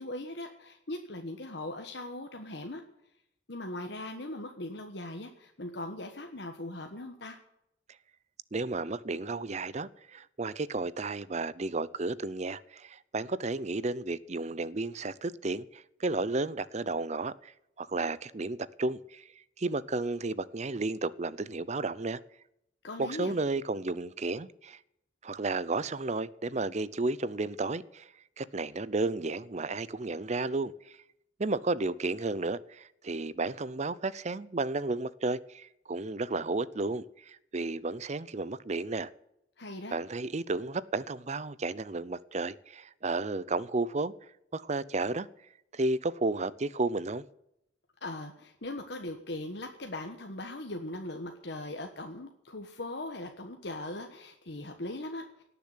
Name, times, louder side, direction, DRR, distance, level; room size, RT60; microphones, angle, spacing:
voice 1, 0.0-2.8 3.5-7.4 22.8-23.3 39.6-40.0 48.0-55.4, left 2 dB, 60° left, 1.4 m, -39 dB
voice 2, 8.5-19.3 19.6-22.2 23.0-24.8 25.2-30.9 31.4-39.1 39.9-44.1 44.5-45.3 45.7-47.2, right 3 dB, 35° right, 0.6 m, -33 dB
18.0 x 7.0 x 9.7 m
head